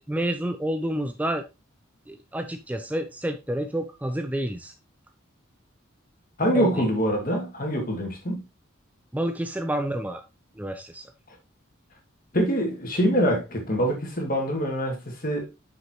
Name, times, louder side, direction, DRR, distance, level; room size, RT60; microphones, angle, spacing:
voice 1, 0.1-1.4 2.1-4.7 6.5-6.7 9.1-10.2 10.6-11.0, right 1 dB, 5° right, 0.4 m, -29 dB
voice 2, 6.4-8.5 12.3-15.6, equal, 45° left, 2.3 m, -25 dB
7.6 x 6.2 x 3.0 m
head